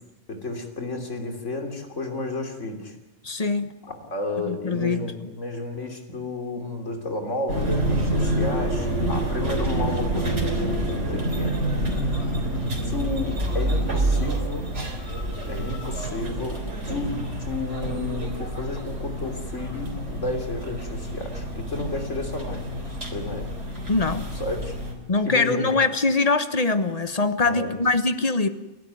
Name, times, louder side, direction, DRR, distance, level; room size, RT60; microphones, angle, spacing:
voice 1, 0.3-3.0 3.8-11.6 12.8-14.7 15.5-23.5 24.4-24.7 25.2-25.8 27.5-27.8, left 2 dB, 70° left, 4 dB, 3.5 m, -32 dB
voice 2, 3.2-3.7 4.4-5.3 9.0-9.3 23.9-24.2 25.1-28.5, left 3 dB, 30° left, 11 dB, 1.2 m, -23 dB
sound 1, 7.5-24.9, right 1 dB, 65° right, 3.9 m, -27 dB
30.0 x 12.0 x 9.5 m, 0.97 s
omnidirectional pair, 1.3 m